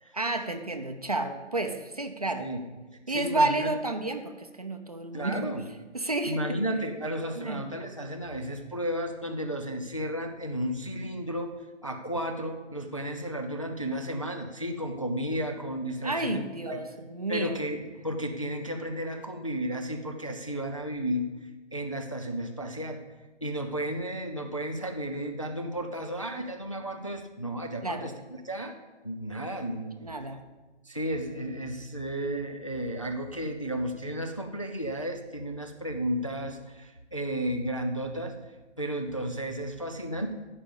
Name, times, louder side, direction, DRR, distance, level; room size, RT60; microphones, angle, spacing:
voice 1, 0.1-2.5 3.1-5.5 5.9-6.4 6.8-6.9 7.4-7.6 16.0-17.6 27.8-28.1 30.0-30.4, right 2 dB, 35° right, 7 dB, 0.7 m, -31 dB
voice 2, 3.1-3.7 5.1-5.6 6.2-11.5 11.8-16.8 17.3-23.0 23.4-28.8 29.0-29.9 30.9-38.3 38.8-40.3, equal, 30° left, 5 dB, 0.5 m, -33 dB
14.0 x 5.1 x 7.1 m, 1.2 s
hypercardioid pair, 170°, 36 cm